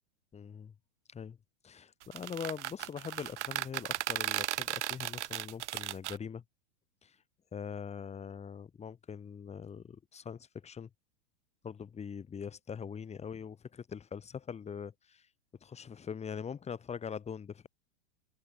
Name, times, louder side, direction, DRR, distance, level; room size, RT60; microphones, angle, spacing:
voice 1, 0.3-0.7 1.1-1.4 1.6-6.4 7.0-7.2 7.5-10.9 11.6-15.3 15.6-17.7, left 7 dB, 20° left, 2.9 m, -42 dB
sound 1, 2.0-6.2, right 13 dB, 70° right, 1.2 m, -35 dB
open air
hypercardioid pair, 115°, 36 cm